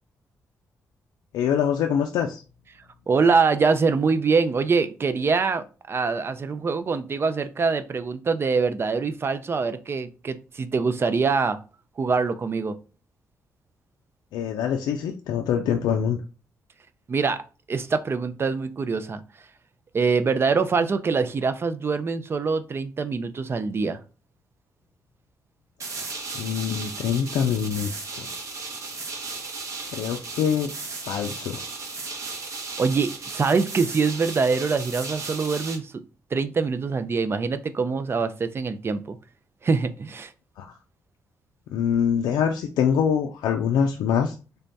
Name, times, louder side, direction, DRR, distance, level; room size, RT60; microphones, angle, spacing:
voice 1, 1.3-2.4 14.3-16.2 26.4-27.9 28.2-28.3 29.9-30.7 31.1-31.6 40.6-40.7 41.7-44.4, left 8 dB, 90° left, 3 dB, 0.4 m, -24 dB
voice 2, 3.1-11.6 12.0-12.8 17.1-17.4 17.7-19.2 19.9-24.0 32.8-36.0 36.3-39.2 39.6-40.3, right 4 dB, 35° right, 11 dB, 0.4 m, -24 dB
sound 1, 25.8-35.8, right 3 dB, 55° right, 0.9 m, -35 dB
3.4 x 2.1 x 4.0 m, 0.34 s
cardioid pair, 80°, 7 cm